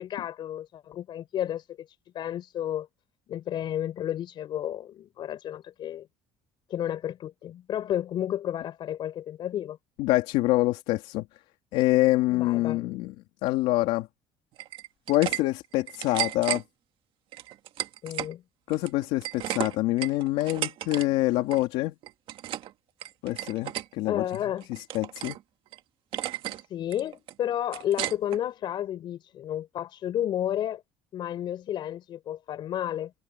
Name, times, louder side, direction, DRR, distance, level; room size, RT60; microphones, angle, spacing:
voice 1, 0.0-1.8 2.1-2.9 3.3-6.1 6.7-9.8 12.3-12.9 18.0-18.4 24.1-24.7 26.7-30.8 31.1-33.1, left 11 dB, 50° left, 4.9 m, -32 dB
voice 2, 10.0-11.2 11.7-13.1 13.4-14.1 15.1-16.6 18.7-21.9 23.2-24.2 24.7-25.4, left 18 dB, 85° left, 3.1 m, -25 dB
sound 1, 14.6-15.4 15.7-16.6 17.3-18.3 18.7-21.1 21.3-21.6 22.0-22.7 23.0-23.9 24.3-25.4 25.7-25.8 26.1-26.6 26.9-28.4, right 13 dB, 60° right, 1.7 m, -34 dB
cardioid pair, 145°, 10 cm